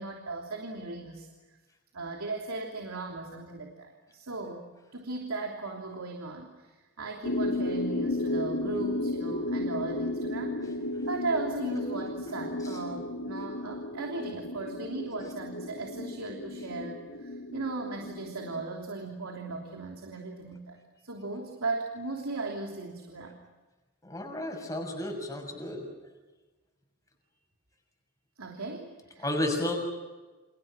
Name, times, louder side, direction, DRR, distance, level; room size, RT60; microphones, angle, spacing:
voice 1, 0.0-1.6 1.9-4.6 4.9-10.7 11.1-20.8 21.0-23.3 28.4-29.2, right 3 dB, 85° right, 1 dB, 3.2 m, -37 dB
sound 1, 7.2-18.6, left 1 dB, 80° left, 2.7 m, -34 dB
voice 2, 24.0-25.8 29.2-29.7, left 1 dB, 15° left, 2 dB, 6.4 m, -32 dB
29.5 x 28.0 x 6.2 m, 1.2 s
head